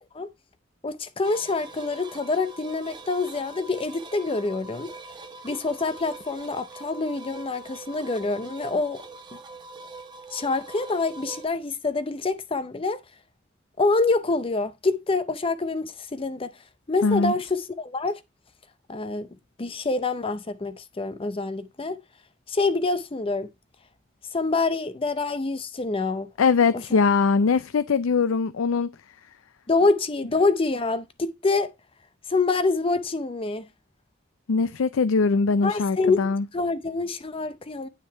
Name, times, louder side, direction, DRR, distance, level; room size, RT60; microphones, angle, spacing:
voice 1, 0.8-4.9 5.4-9.0 9.3-9.4 10.3-13.0 13.8-16.5 16.9-18.2 18.9-19.3 19.6-22.0 22.5-23.5 24.3-26.3 26.7-26.8 29.7-31.7 32.3-33.7 35.6-37.9, left 3 dB, 25° left, 0.6 m, -26 dB
sound 1, 1.2-11.5, right 3 dB, 25° right, 1.4 m, -43 dB
voice 2, 17.0-17.3 26.4-28.9 34.5-36.4, left 4 dB, 80° left, 0.5 m, -21 dB
9.4 x 5.6 x 4.4 m
head